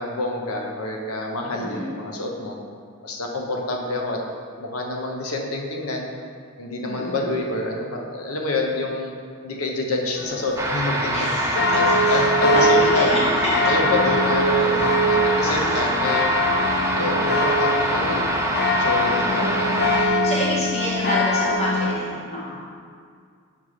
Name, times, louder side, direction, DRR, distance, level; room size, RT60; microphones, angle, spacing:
voice 1, 0.0-2.6 3.0-4.2 4.6-6.1 6.6-9.1 9.4-13.2 13.7-14.8 15.0-16.3 16.9-18.3 18.8-19.9, left 2 dB, 75° left, 1 dB, 0.9 m, -27 dB
voice 2, 1.5-2.0 6.8-7.4 11.1-11.8 12.0-13.2 15.4-15.8 19.1-22.7, equal, 30° left, -7 dB, 1.6 m, -29 dB
sound 1, 10.2-21.9, left 1 dB, 50° left, 0.6 m, -23 dB
sound 2, 10.6-20.1, right 1 dB, 15° right, 0.6 m, -25 dB
5.6 x 5.3 x 4.9 m, 2.2 s
head